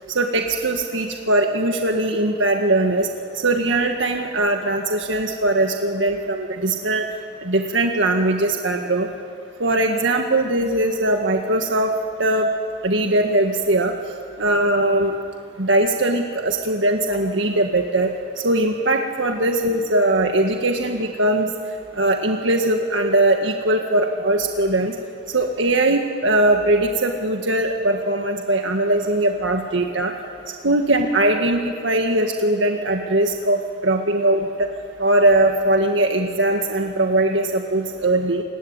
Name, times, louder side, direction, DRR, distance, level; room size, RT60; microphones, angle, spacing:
voice 1, 0.1-3.1 3.3-7.1 7.4-9.1 9.6-11.9 12.2-12.5 12.8-13.9 14.4-15.1 15.6-18.1 18.4-21.5 21.9-25.0 25.3-30.1 30.6-34.7 35.0-38.4, right 1 dB, 85° right, 3 dB, 1.8 m, -20 dB
28.5 x 20.5 x 9.0 m, 2.3 s
head